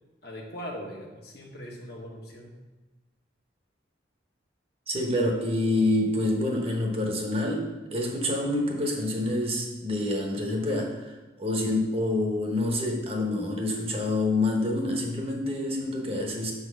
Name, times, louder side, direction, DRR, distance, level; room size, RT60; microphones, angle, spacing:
voice 1, 0.2-2.5, equal, 55° left, -1 dB, 1.3 m, -40 dB
voice 2, 4.9-11.1 11.4-16.5, left 1 dB, 30° right, 0 dB, 1.0 m, -27 dB
6.1 x 4.0 x 6.1 m, 1.2 s
head